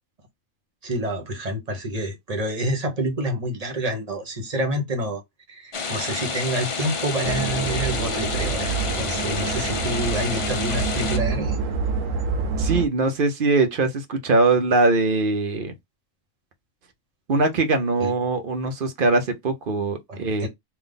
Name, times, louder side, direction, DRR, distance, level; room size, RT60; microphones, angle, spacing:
voice 1, 0.8-5.2 5.5-11.6 18.0-18.1 20.1-20.5, right 1 dB, 30° right, 1.0 m, -28 dB
sound 1, 5.7-11.2, left 5 dB, 60° left, 0.3 m, -29 dB
sound 2, 7.2-12.9, right 5 dB, 70° right, 1.1 m, -27 dB
voice 2, 12.6-15.7 17.3-20.5, right 3 dB, 50° right, 0.7 m, -22 dB
3.5 x 2.4 x 3.8 m
omnidirectional pair, 1.4 m